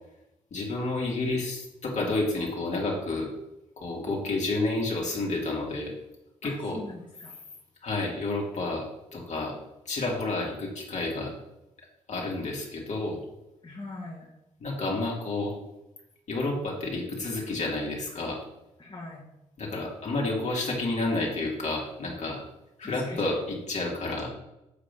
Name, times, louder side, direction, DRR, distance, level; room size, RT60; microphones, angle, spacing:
voice 1, 0.5-3.3 3.8-5.9 6.4-6.8 7.8-9.5 9.9-11.3 12.1-13.2 14.6-15.5 16.3-18.4 19.6-22.4 22.8-24.3, left 2 dB, 55° left, -3 dB, 2.6 m, -30 dB
voice 2, 6.4-7.3 13.6-14.3 18.8-19.2 22.8-23.2, left 2 dB, 35° left, -4 dB, 2.0 m, -41 dB
8.0 x 3.9 x 5.3 m, 0.90 s
supercardioid pair, 50°, 14 cm